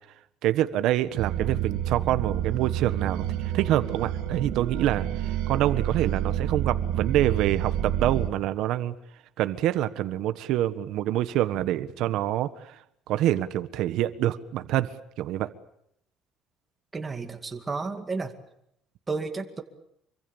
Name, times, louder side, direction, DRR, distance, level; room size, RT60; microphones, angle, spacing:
voice 1, 0.4-8.9 9.4-12.8 13.1-15.5, right 13 dB, 65° right, 12 dB, 1.4 m, -26 dB
sound 1, 1.2-8.3, right 10 dB, 90° right, 2.5 m, -29 dB
voice 2, 16.9-18.3 19.1-19.6, right 4 dB, 15° right, 4 dB, 2.3 m, -32 dB
26.0 x 25.0 x 7.1 m, 0.75 s
cardioid pair, 165°, 0 cm